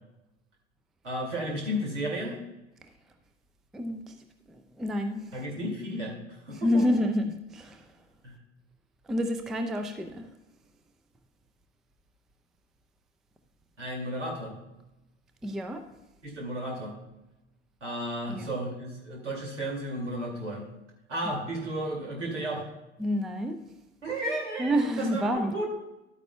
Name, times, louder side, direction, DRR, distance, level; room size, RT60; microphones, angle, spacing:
voice 1, 1.0-2.4 5.3-6.8 8.2-8.3 13.8-14.5 16.2-16.9 17.8-20.6 21.1-22.7 24.0-25.7, right 1 dB, 80° right, 0 dB, 2.3 m, -33 dB
voice 2, 3.7-4.1 4.5-5.3 6.5-7.9 9.0-10.3 15.4-15.9 18.3-18.5 23.0-23.6 24.6-25.5, equal, ahead, 7 dB, 0.3 m, -29 dB
11.5 x 8.9 x 2.2 m, 0.98 s
figure-of-eight pair, 80°, 36 cm